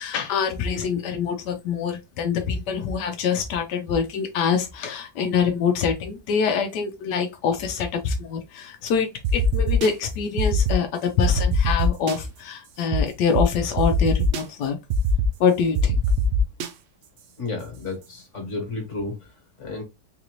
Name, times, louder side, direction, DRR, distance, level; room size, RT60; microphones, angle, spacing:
voice 1, 0.0-14.8 15.4-16.0, left 6 dB, 90° left, 1.2 m, -25 dB
sound 1, 9.2-9.9 10.4-10.8 11.2-12.2 12.9-13.0 13.3-13.4 13.8-14.4 14.9-15.3 15.8-16.7, right 1 dB, 70° right, 0.6 m, -21 dB
voice 2, 17.4-19.1 19.6-19.8, left 3 dB, 50° left, 1.5 m, -31 dB
3.9 x 2.6 x 2.9 m
omnidirectional pair, 1.8 m